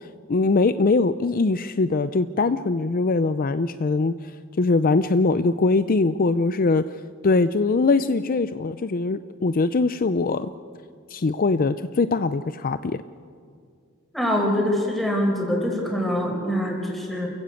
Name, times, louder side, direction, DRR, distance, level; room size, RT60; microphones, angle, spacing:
voice 1, 0.3-4.3 4.6-10.5 11.1-13.0, left 3 dB, 45° left, 12 dB, 0.5 m, -22 dB
voice 2, 14.1-17.3, equal, ahead, 0 dB, 4.9 m, -24 dB
29.0 x 15.5 x 8.4 m, 2.2 s
head